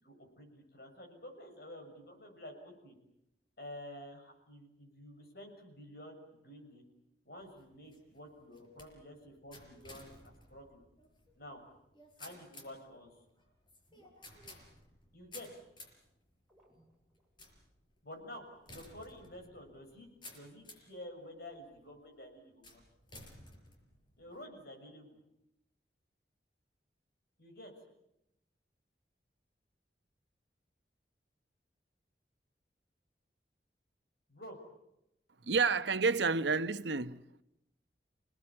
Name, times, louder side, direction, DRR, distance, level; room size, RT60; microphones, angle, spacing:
voice 1, 0.0-3.0 3.6-6.8 7.3-10.8 11.4-11.6 12.2-13.1 15.1-15.6 18.0-22.8 24.2-25.2 27.4-27.7 34.3-34.6, left 1 dB, 60° left, 7.1 m, -50 dB
sound 1, 7.4-21.0 21.6-22.0 22.6-24.4, left 2 dB, 25° left, 5.2 m, -56 dB
sound 2, 13.7-15.2 16.5-17.5 18.0-18.1 19.1-19.7, equal, ahead, 7.6 m, -69 dB
voice 2, 35.4-37.4, right 4 dB, 85° right, 1.0 m, -30 dB
29.0 x 19.0 x 8.8 m
head